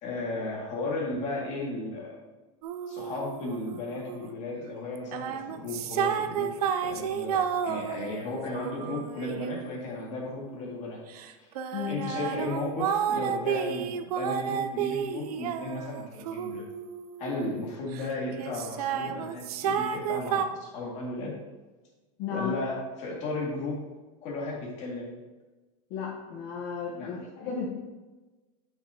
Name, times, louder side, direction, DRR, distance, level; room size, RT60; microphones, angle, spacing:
voice 1, 0.0-2.2 2.9-6.5 6.8-11.0 11.4-11.5 11.9-16.6 17.2-21.3 22.3-23.8 24.2-25.1 27.0-27.1, left 2 dB, 40° left, -3 dB, 2.0 m, -35 dB
sound 1, 2.6-4.3 4.9-10.6 11.1-18.1 18.4-20.4, right 8 dB, 90° right, 0.6 m, -32 dB
voice 2, 11.7-12.1 22.2-22.6 25.9-27.7, left 6 dB, 55° left, -3 dB, 1.1 m, -34 dB
7.9 x 6.1 x 2.8 m, 1.2 s
supercardioid pair, 155°, 19 cm